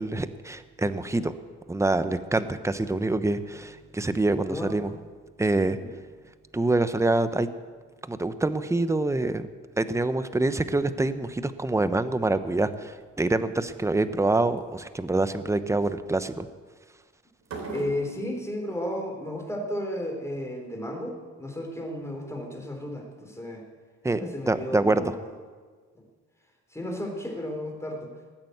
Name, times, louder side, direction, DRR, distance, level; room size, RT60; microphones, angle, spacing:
voice 1, 0.0-1.3 1.7-4.9 5.4-5.8 6.5-7.5 8.1-9.5 9.8-16.5 24.0-25.1, right 2 dB, 10° right, 11 dB, 0.9 m, -26 dB
sound 1, 12.0-12.3 12.7-13.2 13.7-14.1 14.6-14.8 17.4-18.2, right 3 dB, 65° right, 3.6 m, -39 dB
voice 2, 17.7-23.7 24.2-25.3 26.0-26.1 26.7-28.1, left 1 dB, 10° left, 2 dB, 3.8 m, -33 dB
19.5 x 8.9 x 8.0 m, 1.5 s
cardioid pair, 90°, 30 cm